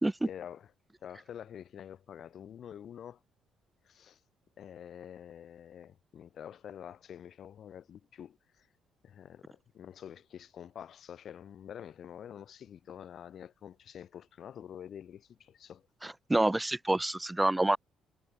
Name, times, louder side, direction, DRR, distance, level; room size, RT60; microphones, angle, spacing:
voice 1, 0.2-0.7 1.0-3.2 3.8-4.2 4.6-8.7 9.0-15.8, left 9 dB, 60° left, 0.9 m, -47 dB
voice 2, 16.0-17.8, right 1 dB, 15° right, 0.5 m, -28 dB
hypercardioid pair, 45°, 0 cm